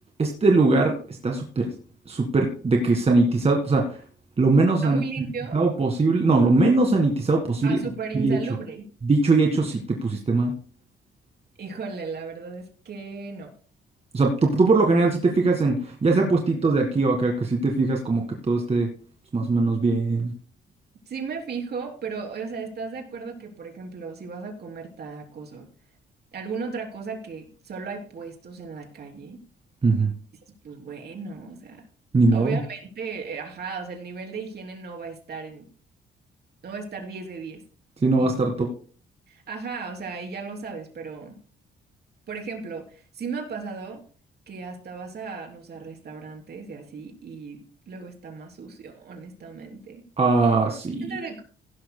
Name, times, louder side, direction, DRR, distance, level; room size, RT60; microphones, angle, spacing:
voice 1, 0.2-1.7 2.1-4.0 4.4-5.0 5.5-7.8 8.1-8.4 9.0-10.5 14.1-18.9 19.3-20.3 29.8-30.1 32.1-32.6 38.0-38.7 50.2-51.1, right 3 dB, 30° right, 1 dB, 1.8 m, -21 dB
voice 2, 4.8-5.6 7.6-8.8 11.6-13.5 21.1-25.7 26.3-29.4 30.6-31.8 32.3-35.7 36.6-37.6 38.2-38.4 39.3-41.3 42.3-44.0 44.5-50.0 51.0-51.4, right 5 dB, 55° right, 1 dB, 3.3 m, -36 dB
16.5 x 11.5 x 2.2 m, 0.43 s
cardioid pair, 90°, 20 cm